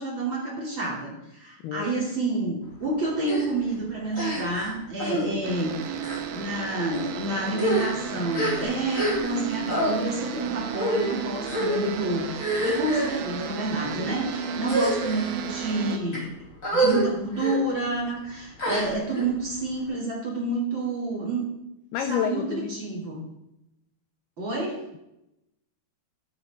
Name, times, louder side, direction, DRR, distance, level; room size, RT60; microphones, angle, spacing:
voice 1, 0.0-6.0 6.3-16.3 16.7-21.5 22.0-23.2 24.4-24.8, right 2 dB, 30° right, -4 dB, 3.2 m, -29 dB
sound 1, 3.2-3.5 4.1-4.7 5.0-5.3 6.0-6.2 6.9-7.1 7.5-9.4 9.7-9.9 10.7-11.1 11.5-11.8 12.4-13.2 13.9-14.1 14.6-15.3 15.9-16.2 16.6-17.0 17.3-17.6 18.6-19.2, right 1 dB, 20° left, 2.9 m, -27 dB
sound 2, 5.4-16.0, right 7 dB, 80° right, 3.4 m, -34 dB
voice 2, 21.9-22.8, left 10 dB, 85° left, 8 dB, 2.2 m, -29 dB
13.0 x 12.0 x 3.7 m, 0.86 s
omnidirectional pair, 5.4 m